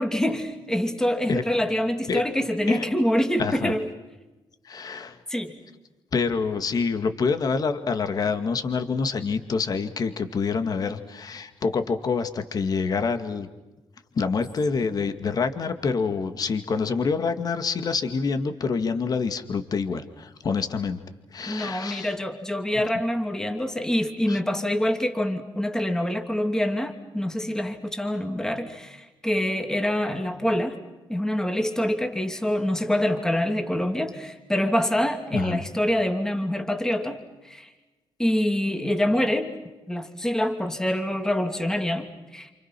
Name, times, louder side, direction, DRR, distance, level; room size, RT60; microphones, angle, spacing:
voice 1, 0.0-3.9 5.3-5.5 14.9-15.0 21.5-30.8 31.1-37.2 37.4-37.7 38.2-39.5 39.9-42.5, left 1 dB, 5° left, 5 dB, 2.8 m, -25 dB
voice 2, 3.4-3.7 4.6-5.2 6.1-13.5 14.2-21.0 21.3-22.1 24.3-24.4 35.3-35.6, left 5 dB, 45° left, 8 dB, 2.2 m, -26 dB
29.0 x 28.5 x 6.1 m, 1.1 s
cardioid pair, 115°, 9 cm